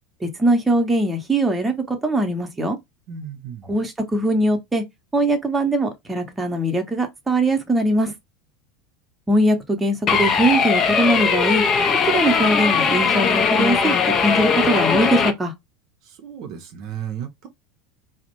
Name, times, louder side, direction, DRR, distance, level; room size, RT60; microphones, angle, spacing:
voice 1, 0.2-2.8 3.7-4.8 5.1-8.1 9.3-11.6 12.1-14.0 14.2-15.5, right 1 dB, 15° right, 0.8 m, -21 dB
voice 2, 3.1-3.8 16.0-17.5, right 8 dB, 55° right, 0.5 m, -34 dB
sound 1, 10.1-15.3, left 6 dB, 40° left, 0.5 m, -19 dB
2.4 x 2.0 x 2.9 m
hypercardioid pair, 80°, 0 cm